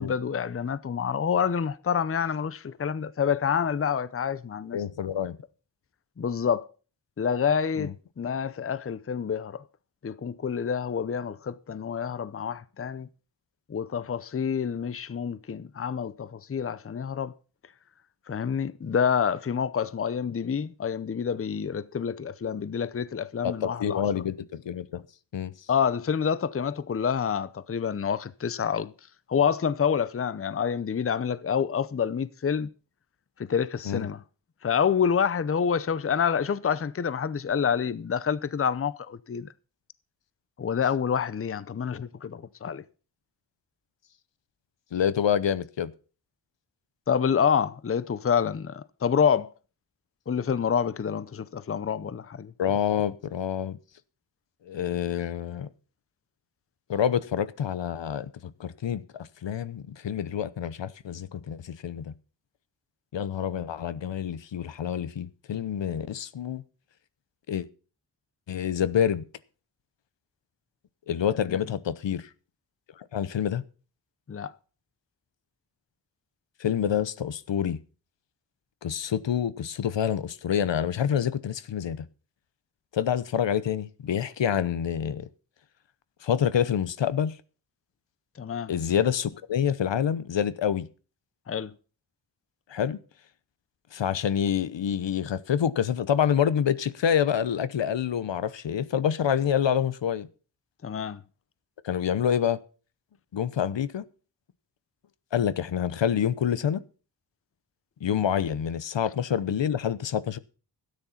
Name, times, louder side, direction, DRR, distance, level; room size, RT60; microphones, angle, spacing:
voice 1, 0.0-4.8 6.2-6.7 7.2-9.6 10.0-13.1 13.7-17.3 18.3-24.2 25.7-28.9 29.3-32.7 33.4-34.2 34.6-39.5 40.6-42.8 47.1-49.5 50.3-52.5 71.5-71.6 74.3-74.5 88.4-88.7 91.5-91.7 100.8-101.2, left 7 dB, 30° left, 0.6 m, -27 dB
voice 2, 4.7-5.4 7.8-7.9 23.4-25.0 25.3-25.5 33.8-34.1 44.9-45.9 52.6-53.8 54.7-55.7 56.9-62.1 63.1-66.6 67.5-67.7 68.5-69.2 71.1-72.3 73.0-73.6 76.6-77.8 78.8-82.0 82.9-85.3 86.2-87.3 88.7-90.9 92.7-93.0 93.9-100.3 101.8-102.6 103.3-104.0 105.3-106.8 108.0-110.4, left 9 dB, 80° left, 0.9 m, -27 dB
13.0 x 9.8 x 5.7 m
wide cardioid pair, 85°, 43 cm